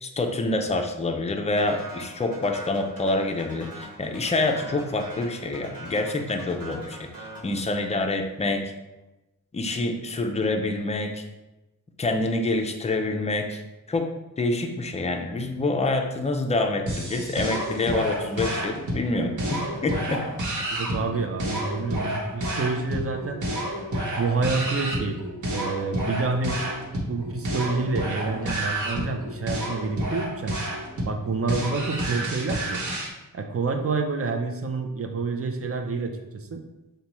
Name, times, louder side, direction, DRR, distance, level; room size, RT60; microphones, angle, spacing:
voice 1, 0.0-8.7 9.5-11.2 12.0-13.6 13.9-14.1 14.4-20.2, left 2 dB, 20° left, 4 dB, 0.4 m, -27 dB
sound 1, 1.6-8.2, right 1 dB, 80° right, 1.2 m, -42 dB
sound 2, 16.9-33.1, right 1 dB, 60° right, 1.1 m, -30 dB
voice 2, 20.7-23.4 24.2-25.2 25.5-26.6 27.1-30.6 31.0-32.8 33.3-36.6, right 4 dB, 40° right, 4 dB, 0.5 m, -28 dB
5.2 x 2.2 x 2.9 m, 1.0 s
wide cardioid pair, 105°, 34 cm